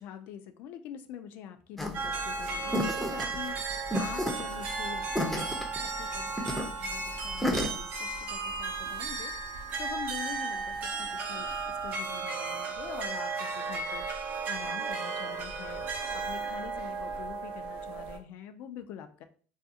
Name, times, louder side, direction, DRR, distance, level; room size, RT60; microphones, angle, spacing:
voice 1, 0.0-5.1 5.8-9.3 9.8-11.5 11.8-14.0 14.5-19.2, left 9 dB, 65° left, 9 dB, 0.3 m, -45 dB
sound 1, 1.8-7.7, left 1 dB, 5° left, 0.5 m, -32 dB
sound 2, 1.9-18.2, right 4 dB, 55° right, 0.5 m, -35 dB
2.4 x 2.3 x 2.6 m, 0.41 s
supercardioid pair, 100°, 4 cm